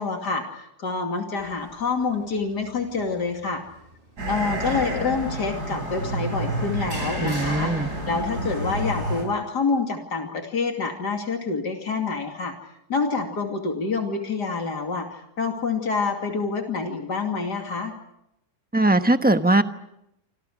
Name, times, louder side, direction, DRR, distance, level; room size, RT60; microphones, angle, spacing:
voice 1, 0.0-3.6 4.3-12.5 12.9-17.9, left 4 dB, 85° left, 3 dB, 3.3 m, -27 dB
sound 1, 1.4-8.9, equal, 30° right, 5.5 m, -45 dB
sound 2, 4.2-9.2, right 1 dB, 70° right, 7.4 m, -29 dB
voice 2, 7.2-7.9 18.7-19.6, right 2 dB, 5° right, 8 dB, 0.9 m, -20 dB
28.0 x 27.0 x 6.3 m, 0.82 s
omnidirectional pair, 1.7 m